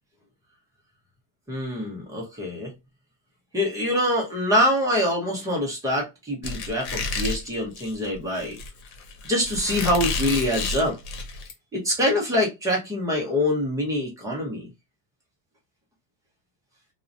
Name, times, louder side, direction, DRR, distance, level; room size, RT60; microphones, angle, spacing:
voice 1, 1.5-2.7 3.5-8.6 9.2-11.0 11.7-14.7, left 1 dB, 10° right, 0.4 m, -25 dB
Squeak, 6.4-11.5, left 3 dB, 80° left, 0.8 m, -30 dB
2.5 x 2.1 x 2.4 m
cardioid pair, 170°, 47 cm